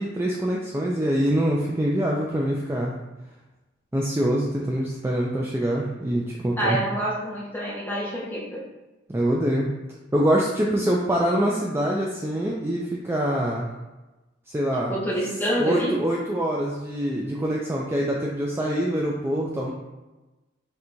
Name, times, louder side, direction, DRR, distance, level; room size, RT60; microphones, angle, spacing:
voice 1, 0.0-2.9 3.9-6.8 9.1-9.7 10.1-13.7 14.5-14.9 15.6-19.7, right 1 dB, 10° right, -3 dB, 0.3 m, -24 dB
voice 2, 6.6-8.7 14.9-16.1, right 1 dB, 10° left, -5 dB, 0.8 m, -27 dB
4.4 x 3.3 x 2.6 m, 1.1 s
head